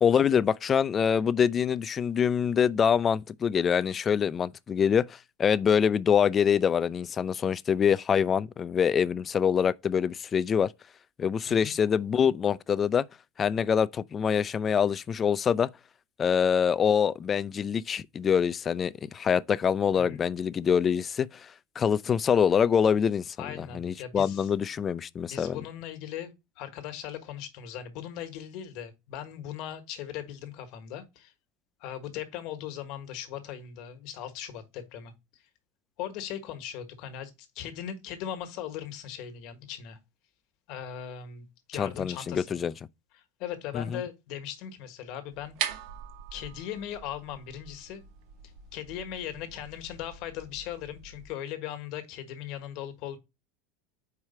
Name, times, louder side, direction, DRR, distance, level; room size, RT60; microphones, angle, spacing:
voice 1, 0.0-10.7 11.2-13.1 13.4-15.7 16.2-25.6 41.7-42.7 43.7-44.0, left 7 dB, 30° left, 0.3 m, -25 dB
voice 2, 23.4-24.5 25.3-31.3 31.8-35.1 36.0-40.0 40.7-42.6 43.4-45.6 46.3-48.0 48.7-53.2, left 10 dB, 60° left, 1.4 m, -39 dB
sound 1, 45.3-51.3, right 9 dB, 60° right, 1.0 m, -41 dB
4.8 x 4.7 x 4.2 m
supercardioid pair, 120°, 0 cm